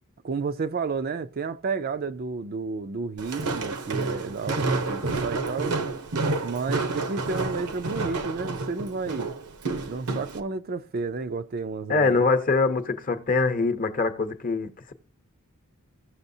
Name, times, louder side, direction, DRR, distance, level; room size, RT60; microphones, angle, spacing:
voice 1, 0.2-5.8 6.4-9.3 9.9-12.2, right 4 dB, 45° right, 0.4 m, -31 dB
Walk footsteps, 3.2-10.4, right 3 dB, 80° right, 0.9 m, -29 dB
voice 2, 11.9-14.9, left 3 dB, 40° left, 0.8 m, -24 dB
16.0 x 6.2 x 2.7 m
head